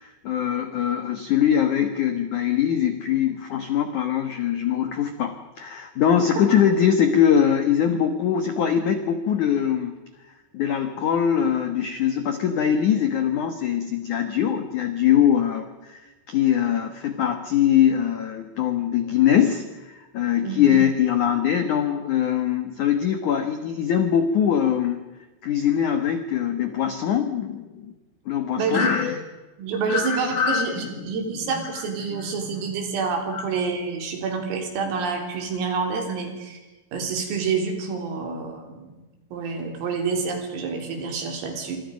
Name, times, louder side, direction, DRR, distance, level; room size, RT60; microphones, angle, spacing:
voice 1, 0.0-9.9 10.5-16.0 16.3-19.6 20.1-25.0 25.4-27.9 28.2-29.2 29.9-30.8 31.7-31.8 32.1-32.3 33.3-33.5, left 9 dB, 80° left, 7 dB, 1.7 m, -22 dB
voice 2, 28.6-28.9 29.6-36.6 36.9-39.0 39.3-41.8, right 5 dB, 80° right, 3 dB, 6.1 m, -28 dB
26.5 x 26.0 x 5.3 m, 1.2 s
omnidirectional pair, 5.9 m